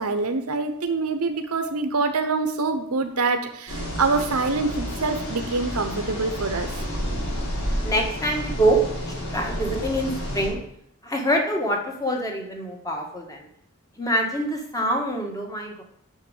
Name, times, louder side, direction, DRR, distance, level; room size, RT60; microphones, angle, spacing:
voice 1, 0.0-6.8, right 3 dB, 80° right, 6 dB, 1.0 m, -25 dB
sound 1, 3.7-10.5, equal, 70° left, 3.7 m, -30 dB
voice 2, 7.8-10.6 11.0-13.5 14.0-15.8, right 1 dB, 15° left, 1 dB, 1.6 m, -25 dB
7.4 x 6.4 x 8.0 m, 0.72 s
head